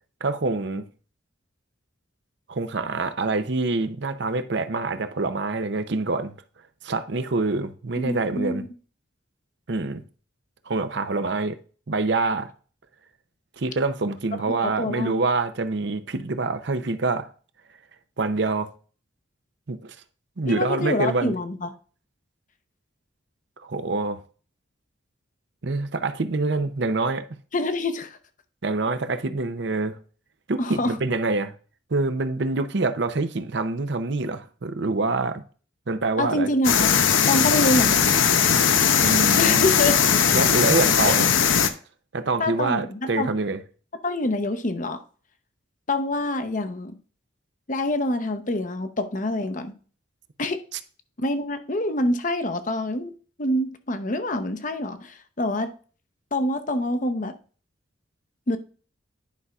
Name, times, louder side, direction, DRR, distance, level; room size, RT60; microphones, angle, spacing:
voice 1, 0.2-0.9 2.5-6.3 6.8-8.6 9.7-10.0 10.7-11.6 11.9-12.5 13.6-17.3 18.2-18.7 19.7-19.9 20.4-21.4 23.6-24.2 25.6-27.2 28.6-30.0 30.5-31.5 31.9-35.4 35.9-36.5 39.0-39.8 40.3-41.2 42.1-43.6, right 3 dB, 60° right, 0.7 m, -26 dB
voice 2, 8.0-8.7 14.5-15.1 20.5-21.7 27.5-28.2 30.6-30.9 36.2-37.0 37.3-38.1 39.4-39.9 41.1-41.2 42.4-43.3 44.0-45.0 45.9-46.9 47.7-49.7 50.4-50.6 51.2-53.1 53.4-55.7 56.3-57.3 58.5-58.6, left 1 dB, 40° left, 0.8 m, -26 dB
sound 1, 36.6-41.7, left 7 dB, 85° left, 0.7 m, -19 dB
10.5 x 5.5 x 2.4 m
head